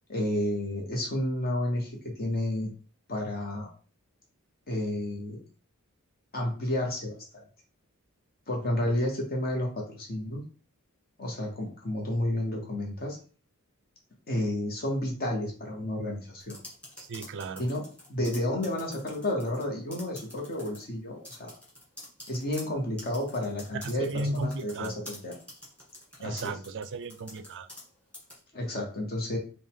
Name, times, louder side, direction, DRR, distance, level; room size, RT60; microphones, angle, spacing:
voice 1, 0.1-2.7 3.1-3.7 4.7-5.4 6.3-7.2 8.5-10.4 11.2-13.2 14.3-16.6 17.6-17.8 18.1-21.5 22.3-25.3 26.2-26.5 28.5-29.4, left 1 dB, 45° left, 0 dB, 1.1 m, -31 dB
sound 1, 16.4-19.6 19.9-20.8 21.2-27.9 28.1-28.4, left 1 dB, 5° left, 1.8 m, -46 dB
voice 2, 17.0-17.6 23.8-24.9 26.2-27.7, right 2 dB, 55° right, 11 dB, 0.4 m, -35 dB
5.2 x 2.3 x 3.6 m, 0.38 s
head